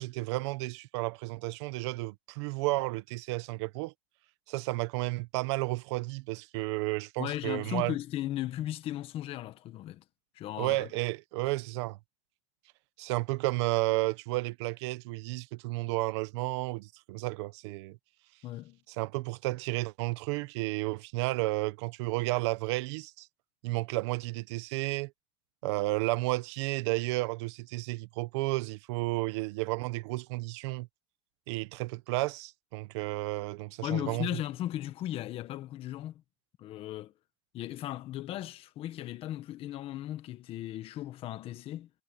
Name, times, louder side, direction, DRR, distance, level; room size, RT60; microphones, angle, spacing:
voice 1, 0.0-3.9 4.5-7.9 10.6-12.0 13.0-18.0 19.0-23.3 23.6-25.1 25.6-30.9 31.5-34.3, right 21 dB, 75° right, 1.1 m, -32 dB
voice 2, 7.2-10.0 10.3-10.9 18.4-18.8 33.8-36.2 36.6-37.1 37.5-41.9, left 13 dB, 40° left, 1.5 m, -36 dB
supercardioid pair, 150°, 14 cm